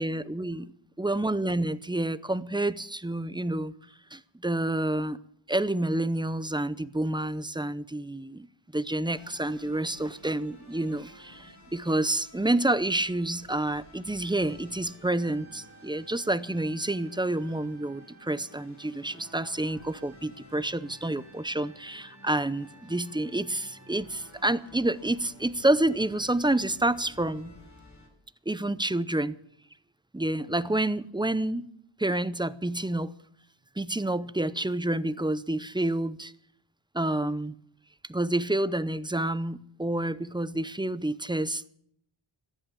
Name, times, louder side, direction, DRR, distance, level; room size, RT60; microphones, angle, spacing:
voice 1, 0.0-0.7 1.0-3.7 4.1-5.2 5.5-8.5 8.7-27.5 28.5-29.4 30.1-31.7 32.0-33.1 33.8-36.3 36.9-37.5 38.1-41.7, right 1 dB, 10° right, 0.6 m, -28 dB
sound 1, 9.1-28.1, equal, 35° left, 5.1 m, -52 dB
15.0 x 11.0 x 8.4 m
wide cardioid pair, 65°, 48 cm